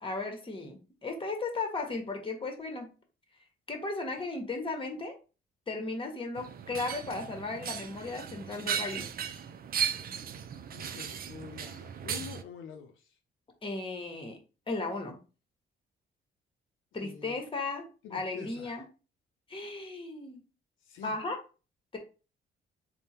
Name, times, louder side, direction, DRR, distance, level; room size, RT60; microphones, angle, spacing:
voice 1, 0.0-2.9 3.7-5.1 5.7-9.0 13.6-14.4 14.7-15.2 16.9-17.8 18.1-18.8 19.5-20.4 21.0-21.4 21.9-22.0, left 3 dB, 25° left, 1.1 m, -35 dB
sound 1, 6.4-12.4, right 8 dB, 50° right, 0.5 m, -36 dB
voice 2, 10.7-12.9 17.0-17.3 18.0-18.8 20.9-21.2, left 7 dB, 80° left, 0.6 m, -46 dB
3.5 x 2.3 x 4.3 m
cardioid pair, 90°, 20 cm